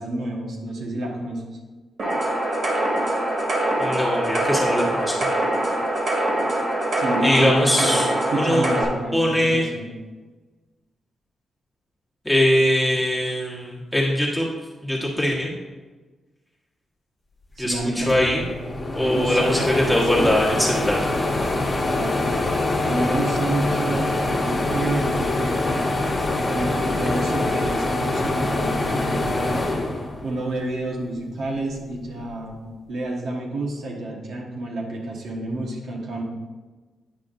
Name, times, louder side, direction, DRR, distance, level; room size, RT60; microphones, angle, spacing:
voice 1, 0.0-1.4 7.0-8.0 8.3-9.9 17.6-18.4 19.0-20.4 22.0-22.2 22.9-25.7 26.5-29.6 30.2-32.5 32.9-36.2, right 1 dB, 70° right, -1 dB, 1.2 m, -29 dB
sound 1, 2.0-8.8, right 1 dB, 50° right, 1.8 m, -23 dB
voice 2, 3.8-5.1 7.2-8.1 8.3-8.7 9.1-9.6 12.2-14.5 14.8-15.5 17.6-18.4 18.9-21.0, left 1 dB, 5° left, -4 dB, 1.4 m, -21 dB
sound 2, 17.7-17.8 18.1-30.7 31.1-32.2, left 2 dB, 30° left, 1.2 m, -24 dB
9.0 x 5.6 x 2.6 m, 1.3 s
cardioid pair, 125°, 0 cm